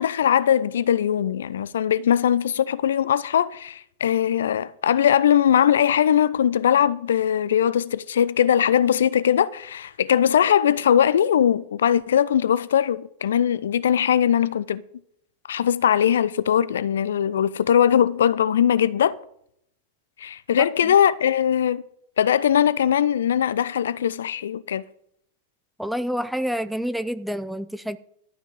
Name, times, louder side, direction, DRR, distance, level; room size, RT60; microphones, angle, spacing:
voice 1, 0.0-14.8 15.5-19.1 20.2-21.8 22.2-24.8, left 9 dB, 65° left, 0.5 m, -20 dB
voice 2, 25.8-28.0, equal, ahead, 0.6 m, -28 dB
12.5 x 6.0 x 7.8 m
figure-of-eight pair, 90°, 0 cm